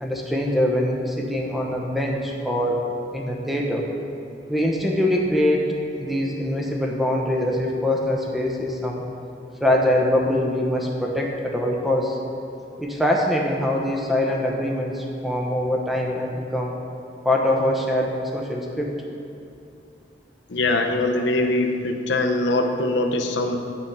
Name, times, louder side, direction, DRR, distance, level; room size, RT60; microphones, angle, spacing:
voice 1, 0.0-2.8 3.1-3.8 4.5-5.7 6.0-9.0 9.6-12.2 12.8-16.7 17.2-19.0, left 1 dB, ahead, -1 dB, 0.8 m, -23 dB
voice 2, 20.5-23.6, left 2 dB, 85° left, 4 dB, 0.8 m, -22 dB
8.2 x 5.9 x 5.9 m, 2.6 s
head